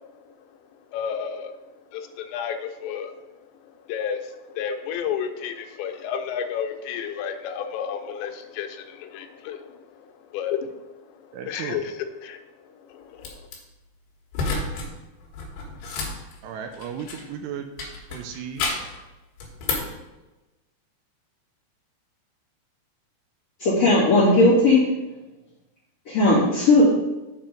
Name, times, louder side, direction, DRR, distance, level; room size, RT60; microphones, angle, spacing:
voice 1, 0.9-1.5 1.9-3.2 3.9-12.4 12.8-13.5, left 8 dB, 90° left, 6 dB, 3.0 m, -32 dB
voice 2, 11.3-11.8 16.4-17.7 18.1-18.9, right 8 dB, 80° right, 6 dB, 2.5 m, -35 dB
sound 1, 13.2-13.6 14.3-14.9 15.2-17.3 17.8-19.0 19.4-20.0, left 3 dB, 70° left, 3.5 m, -30 dB
voice 3, 23.6-24.8 26.1-26.8, left 2 dB, 45° left, -12 dB, 2.9 m, -17 dB
8.0 x 4.3 x 5.1 m, 1.1 s
omnidirectional pair, 5.0 m